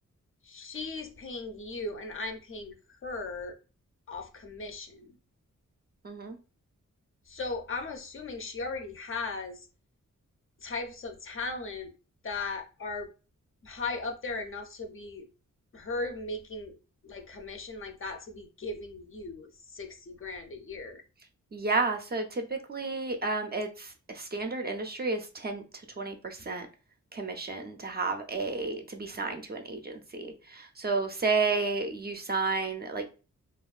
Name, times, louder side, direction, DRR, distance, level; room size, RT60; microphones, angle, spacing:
voice 1, 0.4-3.6 4.1-5.2 7.3-9.7 10.6-11.9 12.2-13.1 13.6-15.3 15.7-16.8 17.0-21.0, left 3 dB, 45° left, 0.4 m, -37 dB
voice 2, 6.0-6.4 21.5-25.6 26.0-26.7 27.1-33.1, right 3 dB, 30° right, 0.4 m, -31 dB
2.9 x 2.3 x 2.3 m
wide cardioid pair, 130°, 31 cm